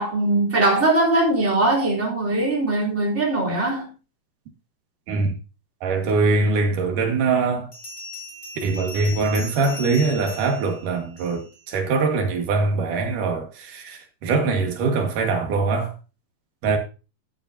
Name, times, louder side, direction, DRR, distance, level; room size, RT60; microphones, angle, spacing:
voice 1, 0.0-3.9, right 2 dB, 15° right, 3.4 m, -21 dB
voice 2, 5.8-7.7 8.6-15.9 16.6-16.8, right 4 dB, 55° right, 2.8 m, -22 dB
Bell, 7.7-11.6, left 1 dB, 20° left, 4.0 m, -38 dB
13.5 x 10.5 x 2.8 m
omnidirectional pair, 5.4 m